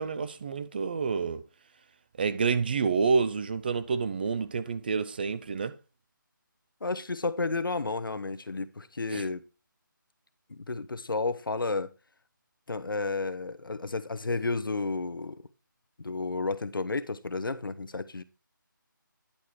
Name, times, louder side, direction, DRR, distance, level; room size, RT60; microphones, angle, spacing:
voice 1, 0.0-1.4 2.2-5.7 9.1-9.2, right 5 dB, 25° right, 0.4 m, -28 dB
voice 2, 6.8-9.4 10.5-11.9 12.7-15.4 16.0-18.2, left 3 dB, 80° left, 0.9 m, -32 dB
10.0 x 4.8 x 4.4 m
figure-of-eight pair, 160°, 11 cm